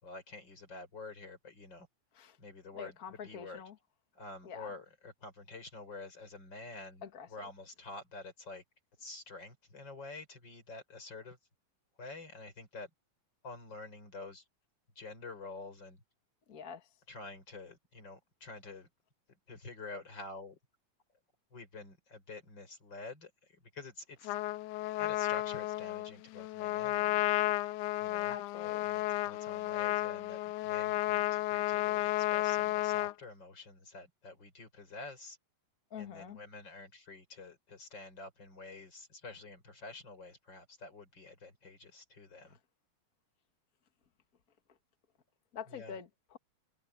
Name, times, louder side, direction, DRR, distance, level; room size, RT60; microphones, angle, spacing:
voice 1, 0.0-1.9 2.4-3.6 4.1-8.6 9.0-11.4 12.0-12.9 13.4-14.4 15.0-16.0 17.1-18.9 19.5-20.6 21.5-24.3 24.8-27.3 28.0-28.4 28.6-35.4 36.0-42.6 45.7-46.0, left 3 dB, 30° left, 6.2 m, -48 dB
voice 2, 2.8-3.7 4.4-4.7 7.0-7.3 16.5-16.8 28.3-28.9 35.9-36.4 45.5-46.4, left 7 dB, 50° left, 1.0 m, -45 dB
Trumpet, 24.2-33.1, left 17 dB, 80° left, 1.9 m, -32 dB
omnidirectional pair, 3.9 m